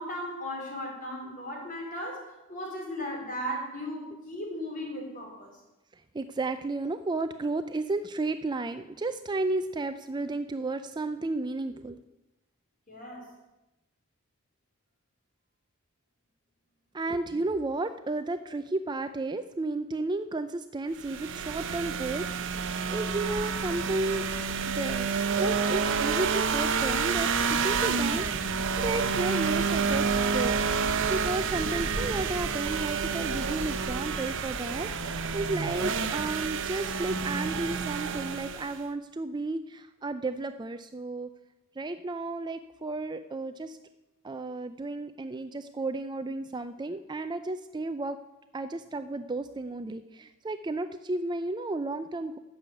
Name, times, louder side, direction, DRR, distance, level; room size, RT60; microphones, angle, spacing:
voice 1, 0.0-5.6 12.9-13.3, equal, 40° left, 0 dB, 4.0 m, -36 dB
voice 2, 6.1-12.0 16.9-24.2 24.7-25.1 25.4-41.3 41.8-43.8 44.2-48.2 48.5-52.4, right 2 dB, 20° right, 9 dB, 0.4 m, -33 dB
sound 1, 21.0-38.8, right 5 dB, 60° right, 0.9 m, -29 dB
sound 2, 22.9-38.4, right 4 dB, 85° right, 1.1 m, -44 dB
12.5 x 7.0 x 9.0 m, 1.0 s
head